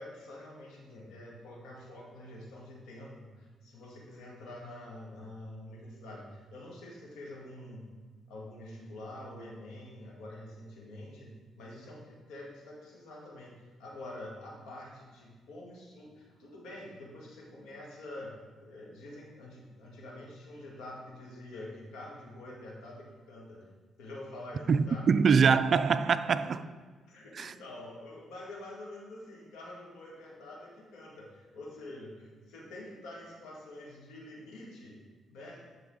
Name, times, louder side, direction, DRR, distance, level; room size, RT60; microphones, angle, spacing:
voice 1, 0.0-7.9 8.3-23.7 24.0-25.1 26.4-26.7 27.1-35.0 35.3-35.7, left 1 dB, 85° left, 2.2 m, -46 dB
voice 2, 24.7-26.6 27.4-27.5, right 6 dB, 50° right, 0.4 m, -24 dB
10.0 x 5.3 x 4.0 m
cardioid pair, 90°, 0 cm